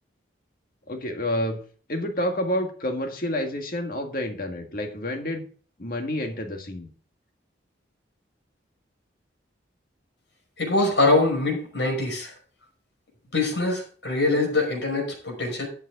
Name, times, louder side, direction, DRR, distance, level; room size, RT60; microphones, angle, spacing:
voice 1, 0.9-1.6 1.9-5.5 5.8-6.9 14.3-14.5, left 1 dB, 50° left, 4 dB, 1.8 m, -29 dB
voice 2, 10.6-12.3 13.3-15.7, left 2 dB, 70° left, 2 dB, 5.6 m, -23 dB
13.0 x 8.1 x 3.9 m, 0.43 s
head